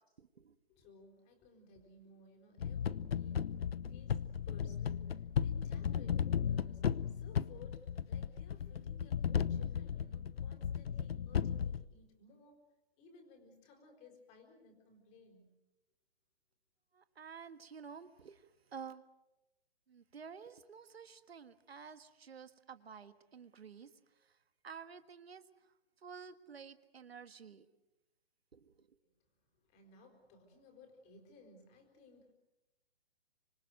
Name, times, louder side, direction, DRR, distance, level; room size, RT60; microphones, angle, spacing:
voice 1, 0.2-0.5 16.9-18.4 18.7-19.0 19.9-23.9 24.6-25.4 26.0-27.7 28.5-28.7, right 6 dB, 75° right, 11 dB, 1.6 m, -51 dB
voice 2, 0.7-12.6 13.0-15.5 29.4-32.3, left 3 dB, 20° left, 4 dB, 4.5 m, -60 dB
sound 1, 2.6-11.8, left 8 dB, 75° left, 0.9 m, -35 dB
26.0 x 25.5 x 6.4 m, 0.98 s
hypercardioid pair, 150°, 31 cm